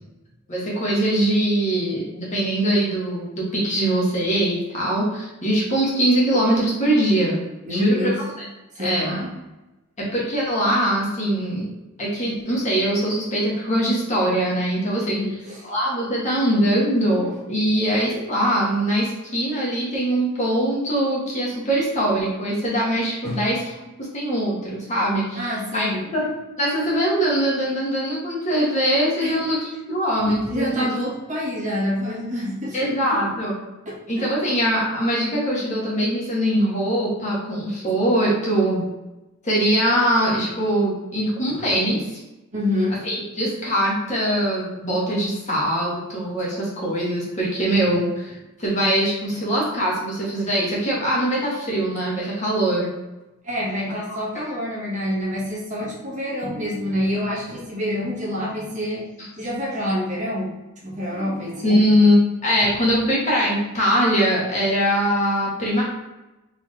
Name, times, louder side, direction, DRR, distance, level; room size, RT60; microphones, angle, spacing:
voice 1, 0.5-7.4 7.7-8.2 8.8-9.2 10.0-11.7 12.0-15.2 15.7-23.6 24.0-26.3 26.6-31.0 32.7-33.5 34.1-38.9 39.4-42.2 43.0-52.9 61.6-62.2 62.4-65.8, right 1 dB, 35° left, -5 dB, 1.4 m, -22 dB
voice 2, 7.6-8.2 8.8-9.3 15.1-15.7 23.2-23.4 25.3-26.0 29.2-29.3 30.2-33.3 33.8-34.5 41.4-41.5 42.5-43.0 53.4-59.0 59.4-60.5 60.8-61.8 62.6-62.8, left 1 dB, 35° right, -6 dB, 1.4 m, -27 dB
4.2 x 3.6 x 3.2 m, 1.0 s
head